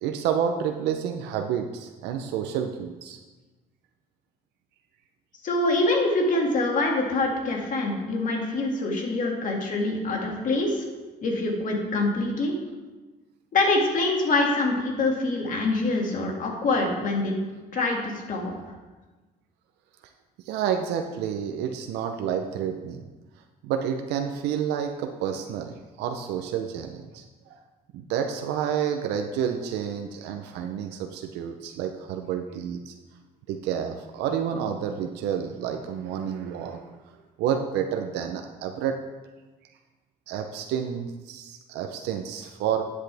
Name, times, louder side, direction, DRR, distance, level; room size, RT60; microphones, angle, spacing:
voice 1, 0.0-3.2 20.5-23.0 23.6-27.5 27.9-32.9 33.5-36.8 37.4-39.0 40.3-42.8, right 8 dB, 85° right, 5 dB, 0.7 m, -29 dB
voice 2, 5.4-10.8 11.2-12.5 13.5-17.4 17.7-18.5, left 2 dB, 50° left, 0 dB, 2.1 m, -25 dB
10.5 x 8.2 x 3.4 m, 1.2 s
cardioid pair, 110°, 17 cm